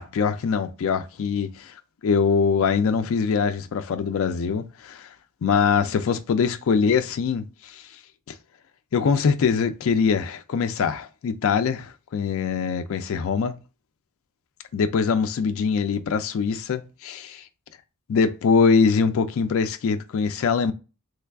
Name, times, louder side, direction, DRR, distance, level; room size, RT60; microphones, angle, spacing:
voice 1, 0.0-1.8 2.0-5.1 5.4-7.8 8.9-13.6 14.7-17.4 18.1-20.7, left 5 dB, 65° left, 0.4 m, -23 dB
3.3 x 2.3 x 3.3 m
head